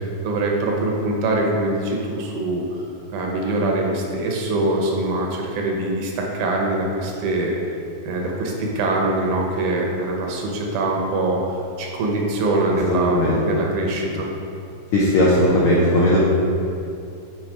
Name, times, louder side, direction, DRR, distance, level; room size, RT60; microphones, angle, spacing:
voice 1, 0.2-2.6 3.1-7.6 8.1-14.3, right 2 dB, 90° right, 0 dB, 2.5 m, -23 dB
voice 2, 12.9-13.4 14.9-16.2, left 1 dB, 80° left, -6 dB, 1.2 m, -17 dB
7.3 x 4.1 x 4.6 m, 2.6 s
omnidirectional pair, 3.5 m